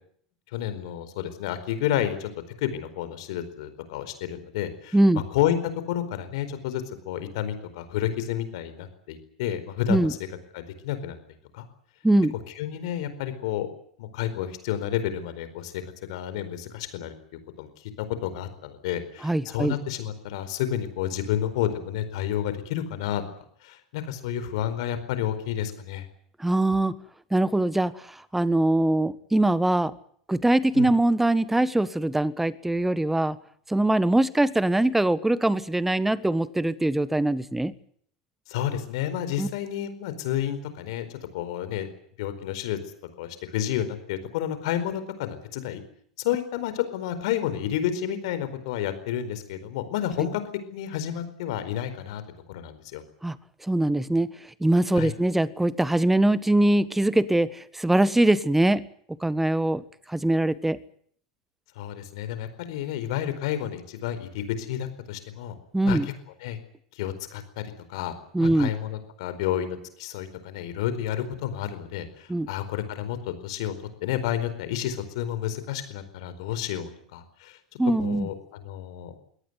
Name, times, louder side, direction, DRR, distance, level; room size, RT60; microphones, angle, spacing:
voice 1, 0.5-2.3 2.6-5.0 5.3-5.5 5.9-10.1 10.5-11.2 11.5-11.6 12.6-13.7 14.0-15.8 16.1-17.1 17.6-17.7 18.2-23.2 23.6-26.1 30.7-30.9 38.5-41.9 42.2-42.8 43.2-45.8 46.2-50.4 50.7-52.2 52.5-53.0 54.9-55.1 61.8-65.5 65.8-66.1 66.4-66.6 66.9-67.6 67.9-73.7 74.0-77.6 78.0-79.2, left 11 dB, 65° left, 11 dB, 4.6 m, -30 dB
voice 2, 19.2-19.7 26.4-26.9 27.3-27.9 28.3-29.9 30.3-33.4 33.7-37.7 39.4-39.5 53.2-53.3 53.7-54.3 54.6-58.8 59.2-59.8 60.1-60.8 65.7-66.1 68.3-68.7 72.3-72.5 77.8-78.3, right 1 dB, 5° right, 17 dB, 1.4 m, -22 dB
23.0 x 18.0 x 9.5 m, 0.63 s
hypercardioid pair, 90°, 3 cm